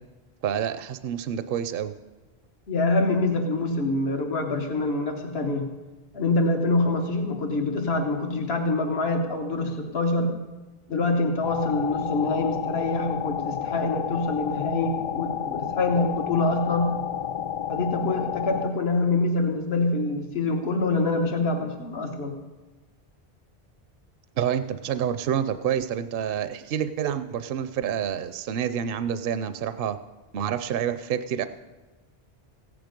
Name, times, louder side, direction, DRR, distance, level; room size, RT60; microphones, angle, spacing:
voice 1, 0.4-1.9 24.4-30.0 30.3-31.5, right 9 dB, 65° right, 11 dB, 0.7 m, -28 dB
voice 2, 2.7-5.6 6.1-10.3 10.9-17.0 17.7-22.3, left 2 dB, 75° left, 3 dB, 1.5 m, -25 dB
sound 1, 11.4-18.7, left 10 dB, 50° left, 0.4 m, -31 dB
15.5 x 9.6 x 5.2 m, 1.2 s
omnidirectional pair, 1.0 m